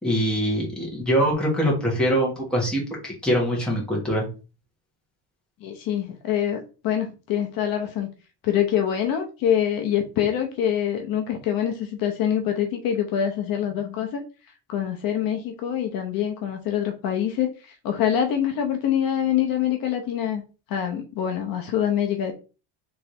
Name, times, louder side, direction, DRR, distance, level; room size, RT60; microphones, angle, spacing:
voice 1, 0.0-4.2, equal, ahead, -3 dB, 1.4 m, -23 dB
voice 2, 5.6-8.1 8.4-14.2 14.7-20.4 20.7-22.3, left 9 dB, 55° left, 3 dB, 0.8 m, -25 dB
3.4 x 3.3 x 4.3 m, 0.33 s
cardioid pair, 175°, 43 cm